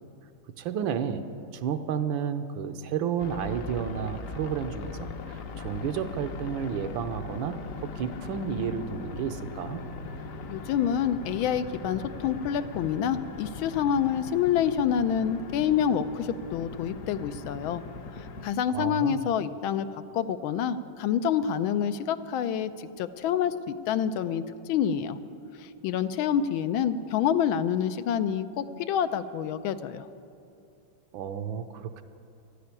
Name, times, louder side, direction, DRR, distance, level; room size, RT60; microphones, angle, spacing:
voice 1, 0.6-1.2 1.5-9.8 18.7-19.3 31.1-32.0, right 7 dB, 75° right, 9 dB, 1.5 m, -32 dB
sound 1, 3.2-18.5, left 4 dB, 60° left, 0.9 m, -40 dB
voice 2, 10.5-17.8 18.4-19.9 20.1-25.2 25.6-30.1, left 8 dB, 85° left, 11 dB, 1.4 m, -27 dB
13.0 x 10.5 x 9.7 m, 2.6 s
omnidirectional pair, 2.2 m